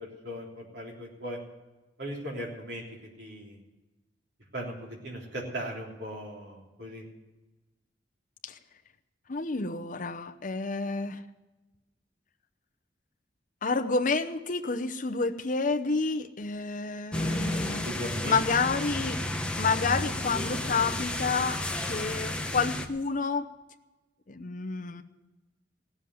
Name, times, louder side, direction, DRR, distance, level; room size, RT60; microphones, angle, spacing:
voice 1, 0.0-1.4 2.0-2.8 3.2-3.6 4.5-7.1 17.6-18.4, equal, 65° right, -2 dB, 3.4 m, -38 dB
voice 2, 9.3-11.2 13.6-17.9 18.2-19.2 19.6-21.6 21.9-23.5 24.3-25.0, left 4 dB, 45° left, 7 dB, 0.8 m, -29 dB
sound 1, 17.1-22.9, left 1 dB, 5° left, 0.9 m, -32 dB
16.5 x 7.4 x 9.3 m, 1.1 s
head